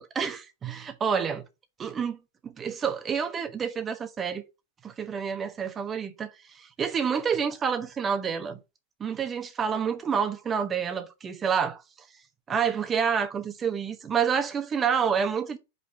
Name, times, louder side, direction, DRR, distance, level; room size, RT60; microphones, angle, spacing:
voice 1, 0.0-1.4 1.8-2.2 2.4-4.4 4.8-6.3 6.5-8.6 9.0-11.8 12.5-15.6, right 7 dB, 20° right, 1.2 m, -28 dB
5.3 x 4.0 x 5.8 m
figure-of-eight pair, 90°, 0 cm